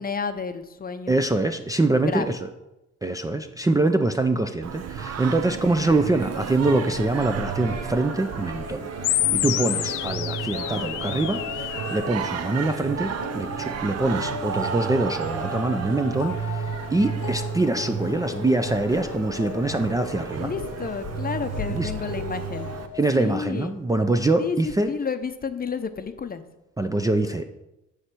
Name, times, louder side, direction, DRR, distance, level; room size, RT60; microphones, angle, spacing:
voice 1, 0.0-1.2 2.1-2.4 20.4-22.7 23.2-23.7 24.4-24.6 24.9-26.4, left 5 dB, 30° left, 10 dB, 0.6 m, -30 dB
voice 2, 1.1-2.5 3.0-8.9 9.1-20.5 21.7-21.9 22.9-24.9 26.8-27.4, right 2 dB, 10° right, 4 dB, 0.4 m, -24 dB
Singing, 4.6-22.9, right 8 dB, 55° right, 0.7 m, -33 dB
sound 1, 6.6-23.0, left 7 dB, 65° left, 0.9 m, -38 dB
sound 2, 9.0-12.0, left 15 dB, 90° left, 0.5 m, -27 dB
9.6 x 3.2 x 6.1 m, 0.95 s
cardioid pair, 90°, 30 cm